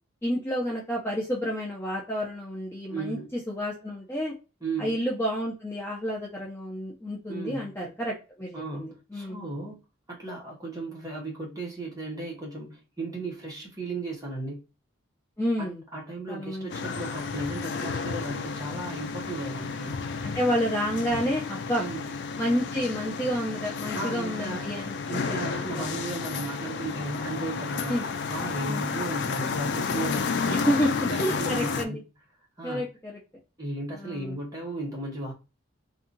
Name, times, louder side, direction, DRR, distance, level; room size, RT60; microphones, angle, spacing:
voice 1, 0.2-4.3 4.8-9.4 15.4-15.8 16.3-16.7 20.2-21.9 22.4-25.0 25.3-25.5 25.7-25.9 27.9-28.0 28.7-28.8 30.5-30.9 31.2-32.0 32.6-33.2 33.9-34.4, equal, 10° left, 0.6 m, -30 dB
voice 2, 2.9-3.3 4.6-5.0 7.3-7.7 8.5-9.8 10.1-14.6 15.6-20.0 21.8-22.0 23.9-24.8 25.1-28.0 28.3-30.8 31.1-32.0 32.6-32.9 33.6-35.3, right 2 dB, 15° right, 1.0 m, -35 dB
sound 1, 16.7-31.8, left 5 dB, 55° left, 0.3 m, -32 dB
2.7 x 2.4 x 2.5 m
head